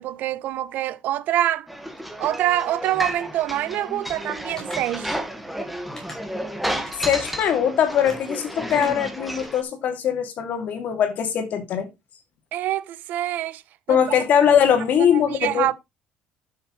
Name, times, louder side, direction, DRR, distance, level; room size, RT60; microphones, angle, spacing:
voice 1, 0.0-1.7 2.2-5.2 12.5-13.6 13.9-14.0 14.4-14.5 15.0-15.7, right 13 dB, 65° right, 0.8 m, -25 dB
sound 1, 1.7-9.6, equal, ahead, 1.6 m, -32 dB
sound 2, 4.6-4.8 6.0-6.2 6.9-7.5 8.0-8.2 8.7-8.9 9.4-9.5, left 1 dB, 20° left, 5.4 m, -41 dB
voice 2, 7.0-11.9 13.9-15.7, left 8 dB, 55° left, 2.6 m, -21 dB
12.0 x 6.9 x 3.2 m
cardioid pair, 120°, 3 cm